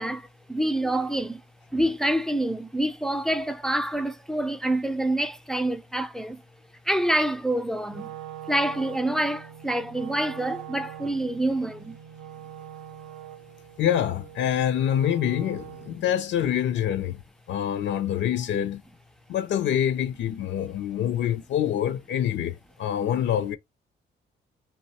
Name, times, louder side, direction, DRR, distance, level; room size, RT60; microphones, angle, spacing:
voice 1, 0.0-1.4 1.7-6.4 6.9-8.1 8.5-12.0, right 1 dB, ahead, 0.3 m, -27 dB
Wind instrument woodwind instrument, 7.9-16.1, right 11 dB, 85° right, 0.5 m, -43 dB
voice 2, 13.8-17.2 17.5-18.8 19.3-23.6, left 10 dB, 65° left, 0.5 m, -26 dB
2.7 x 2.1 x 2.7 m
cardioid pair, 90°, 20 cm